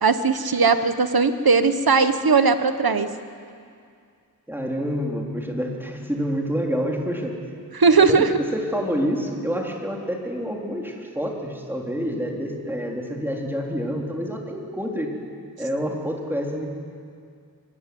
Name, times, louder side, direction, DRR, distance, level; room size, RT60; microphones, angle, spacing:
voice 1, 0.0-3.1 7.7-8.3, right 4 dB, 70° right, 10 dB, 1.2 m, -18 dB
voice 2, 4.5-7.4 8.0-15.2 15.6-16.7, equal, 5° right, 0 dB, 3.6 m, -27 dB
24.5 x 15.0 x 9.5 m, 2.3 s
wide cardioid pair, 60°, 38 cm